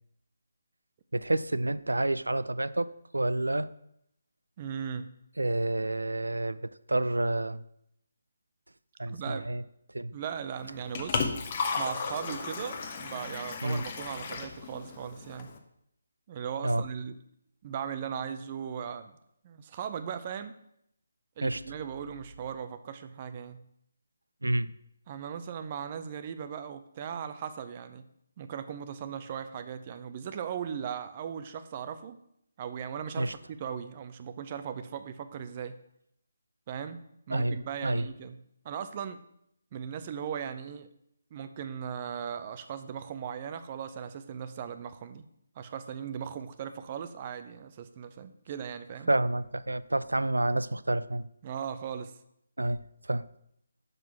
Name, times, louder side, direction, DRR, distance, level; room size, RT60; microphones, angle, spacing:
voice 1, 1.1-3.7 5.4-7.6 9.0-9.6 9.9-10.1 13.6-13.9 16.6-16.9 21.4-21.6 24.4-24.7 33.2-33.3 37.3-38.1 49.1-51.3 52.6-53.3, right 1 dB, 85° right, 16 dB, 0.3 m, -29 dB
voice 2, 4.6-5.1 9.1-9.5 10.1-11.2 11.8-15.5 16.3-17.1 17.6-19.1 19.4-20.5 21.4-23.6 25.1-28.0 28.4-32.2 32.6-35.8 36.7-37.0 37.3-38.4 38.6-39.2 39.7-40.9 41.3-45.3 45.6-49.1 51.4-52.2, right 8 dB, 35° right, 11 dB, 0.5 m, -38 dB
Liquid, 10.6-15.6, left 5 dB, 35° left, 0.9 m, -35 dB
6.1 x 5.3 x 5.9 m, 0.75 s
figure-of-eight pair, 150°, 0 cm